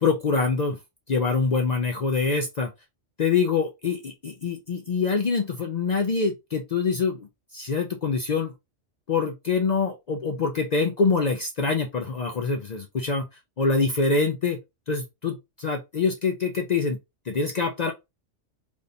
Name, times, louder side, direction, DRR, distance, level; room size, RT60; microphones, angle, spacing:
voice 1, 0.0-0.8 1.1-2.7 3.2-8.5 9.1-13.2 13.6-14.6 14.9-17.0 17.3-17.9, left 4 dB, 55° left, 0.5 m, -25 dB
3.5 x 2.5 x 2.6 m
omnidirectional pair, 1.2 m